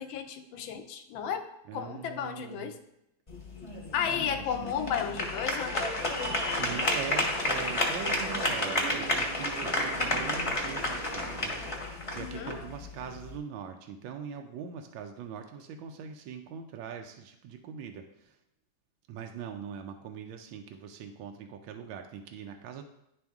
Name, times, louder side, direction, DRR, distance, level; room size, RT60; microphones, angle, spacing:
voice 1, 0.0-2.8 3.9-5.9 12.2-12.6, left 8 dB, 80° left, 8 dB, 1.4 m, -33 dB
voice 2, 1.7-2.8 4.0-4.7 6.6-18.4 19.1-22.8, right 7 dB, 80° right, 5 dB, 1.3 m, -42 dB
sound 1, 3.3-13.4, left 1 dB, 25° left, 0.7 m, -31 dB
sound 2, 6.5-11.8, right 6 dB, 60° right, 0.9 m, -43 dB
10.0 x 3.5 x 3.5 m, 0.82 s
omnidirectional pair, 2.2 m